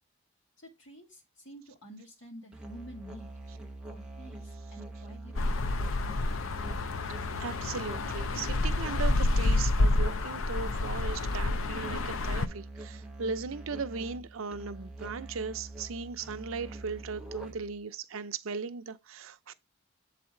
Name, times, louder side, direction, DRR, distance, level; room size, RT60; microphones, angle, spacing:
voice 1, 0.6-3.3 3.9-5.9, equal, 65° left, 2.3 m, -50 dB
Musical instrument, 2.5-17.8, right 2 dB, 5° right, 0.6 m, -44 dB
sound 1, 5.4-12.5, left 2 dB, 80° left, 0.5 m, -29 dB
voice 2, 7.4-19.5, right 5 dB, 85° right, 0.6 m, -37 dB
7.9 x 4.2 x 3.7 m
head